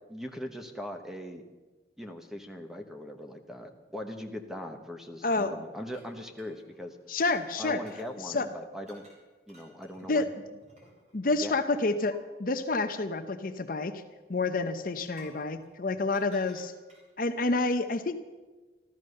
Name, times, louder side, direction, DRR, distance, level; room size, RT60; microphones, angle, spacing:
voice 1, 0.1-1.4 2.0-7.0 7.6-9.1 9.5-10.3 11.4-11.6, equal, ahead, 4 dB, 1.1 m, -40 dB
voice 2, 5.2-5.5 7.1-7.8 8.2-8.5 10.1-10.3 11.1-14.0 14.3-16.7 17.2-18.2, left 3 dB, 50° left, 9 dB, 0.8 m, -29 dB
sound 1, 5.9-8.1 8.8-9.2 9.5-11.2 12.1-12.2 15.1-17.2, right 1 dB, 40° right, 3.9 m, -57 dB
14.5 x 13.5 x 6.5 m, 1.3 s
head